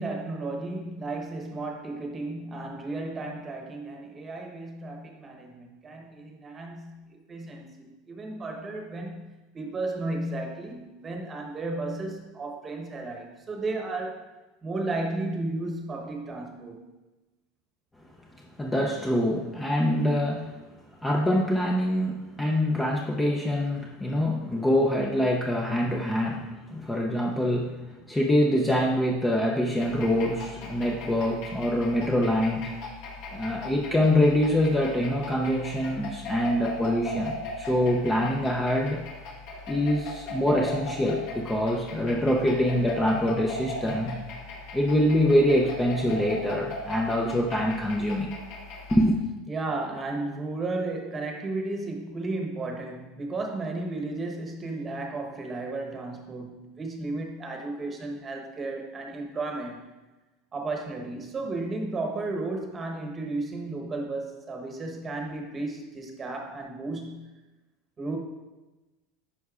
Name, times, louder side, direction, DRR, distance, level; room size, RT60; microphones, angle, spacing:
voice 1, 0.0-14.3 14.6-16.8 49.5-59.8 60.5-67.3 68.0-68.2, right 2 dB, 20° right, 2 dB, 1.0 m, -34 dB
voice 2, 18.6-20.5 21.0-32.7 33.3-39.0 39.7-44.2 44.7-48.3 48.9-49.2, left 1 dB, 10° left, -1 dB, 0.5 m, -25 dB
sound 1, 29.8-49.1, left 2 dB, 60° left, 1.6 m, -39 dB
9.6 x 5.4 x 2.4 m, 1.1 s
supercardioid pair, 150°, 0 cm